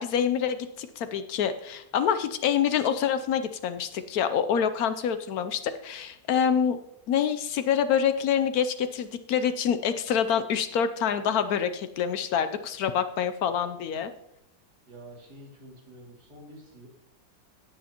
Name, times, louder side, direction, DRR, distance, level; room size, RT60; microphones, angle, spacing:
voice 1, 0.0-6.8 7.1-14.1, left 8 dB, 70° left, 10 dB, 0.9 m, -26 dB
voice 2, 14.9-16.9, right 1 dB, 60° right, -3 dB, 3.1 m, -48 dB
16.5 x 6.6 x 2.9 m, 0.81 s
omnidirectional pair, 2.0 m